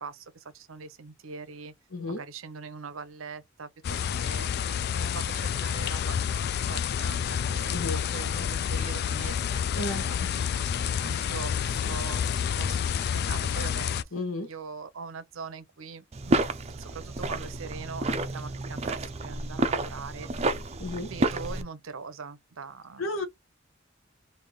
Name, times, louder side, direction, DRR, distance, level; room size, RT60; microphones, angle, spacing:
voice 1, 0.0-1.7 2.1-4.5 4.9-6.2 6.7-7.8 8.1-9.6 9.9-10.6 11.0-14.1 14.4-20.3 21.0-23.0, right 5 dB, 80° right, 0.7 m, -42 dB
voice 2, 1.9-2.2 7.7-8.0 9.8-10.3 14.1-14.5 20.8-21.1 23.0-23.2, left 2 dB, 85° left, 1.1 m, -32 dB
sound 1, 3.8-14.0, left 8 dB, 50° left, 0.3 m, -29 dB
sound 2, 16.1-21.6, right 2 dB, 30° right, 0.5 m, -30 dB
3.3 x 2.6 x 3.7 m
head